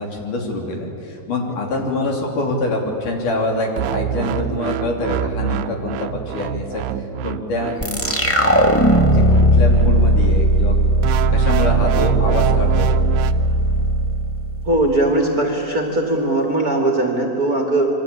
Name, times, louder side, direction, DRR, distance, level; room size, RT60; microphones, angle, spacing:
voice 1, 0.0-6.8 7.2-8.0 8.4-9.2 9.5-10.8 11.3-12.9, left 2 dB, 65° left, 1 dB, 4.6 m, -25 dB
sound 1, 3.8-10.3 11.0-13.3, right 10 dB, 75° right, 2.3 m, -26 dB
sound 2, 7.8-15.1, right 1 dB, 10° left, 0.9 m, -17 dB
voice 2, 14.6-17.9, right 2 dB, 30° right, 2 dB, 2.4 m, -19 dB
27.0 x 24.0 x 8.6 m, 2.8 s
omnidirectional pair, 4.0 m